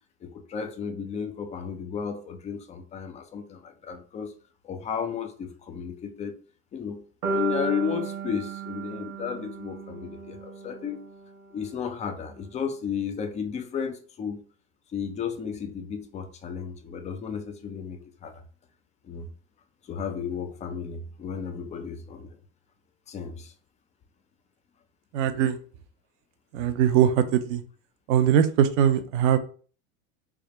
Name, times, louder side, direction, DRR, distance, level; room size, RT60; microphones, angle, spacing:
voice 1, 0.2-4.3 4.6-6.4 6.7-11.0 11.5-14.4 14.9-18.4 19.0-19.3 19.9-22.4 23.1-23.5, left 7 dB, 20° left, 0.4 m, -33 dB
sound 1, 7.2-11.3, right 2 dB, 90° right, 0.9 m, -33 dB
voice 2, 25.1-25.6 26.5-27.6 28.1-29.4, right 9 dB, 60° right, 0.6 m, -21 dB
3.5 x 2.1 x 3.7 m
hypercardioid pair, 100°, 42 cm